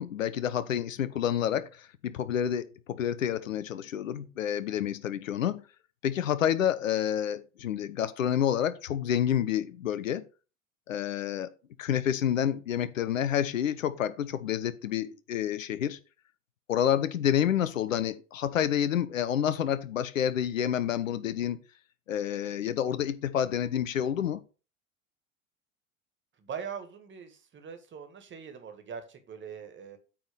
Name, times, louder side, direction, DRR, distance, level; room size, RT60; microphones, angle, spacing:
voice 1, 0.0-5.6 6.0-10.2 10.9-11.5 11.8-16.0 16.7-21.6 22.1-24.4, left 10 dB, 75° left, 0.8 m, -29 dB
voice 2, 22.3-22.6 26.4-30.0, right 7 dB, 30° right, 1.7 m, -42 dB
8.9 x 3.7 x 5.2 m
figure-of-eight pair, 75°, 40 cm